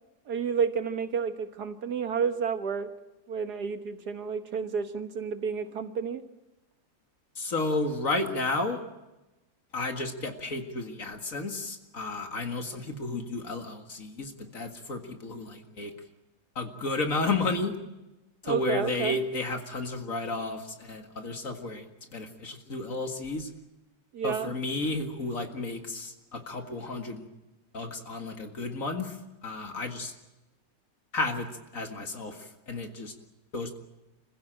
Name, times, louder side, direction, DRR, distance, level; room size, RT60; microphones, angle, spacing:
voice 1, 0.3-2.9 3.3-6.2 18.4-19.2 24.1-24.5, right 6 dB, 60° right, 9 dB, 1.7 m, -30 dB
voice 2, 7.4-8.8 9.7-15.9 16.6-17.7 18.4-21.9 22.1-23.5 24.2-27.3 27.7-29.2 29.4-30.1 31.1-31.5 31.7-33.1 33.5-33.8, left 3 dB, 45° left, 5 dB, 2.3 m, -32 dB
27.0 x 16.0 x 9.0 m, 1.0 s
omnidirectional pair, 2.0 m